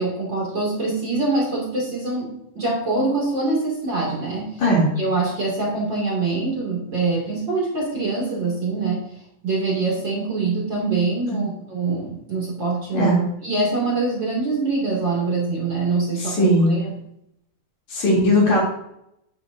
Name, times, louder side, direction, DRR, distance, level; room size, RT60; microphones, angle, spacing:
voice 1, 0.0-2.3 2.5-4.6 5.0-9.0 9.4-13.1 13.4-16.9, right 3 dB, 35° right, -3 dB, 2.8 m, -24 dB
voice 2, 16.2-16.7 17.9-18.6, equal, 55° left, -4 dB, 4.2 m, -18 dB
10.5 x 10.0 x 2.7 m, 0.78 s
omnidirectional pair, 4.1 m